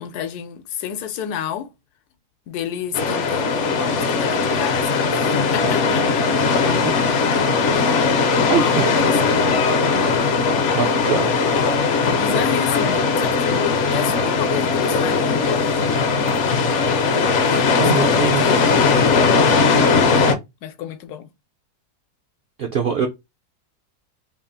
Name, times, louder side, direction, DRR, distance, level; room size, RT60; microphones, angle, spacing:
voice 1, 0.0-1.7 2.5-6.3 7.7-9.5 12.1-15.9 17.4-18.9 20.6-21.3, left 9 dB, 80° left, 1.1 m, -30 dB
sound 1, 2.9-20.3, left 4 dB, 60° left, 0.8 m, -19 dB
voice 2, 8.5-8.8 10.7-11.3 17.8-18.4 22.6-23.1, right 7 dB, 70° right, 0.5 m, -22 dB
3.4 x 2.4 x 3.8 m
omnidirectional pair, 1.7 m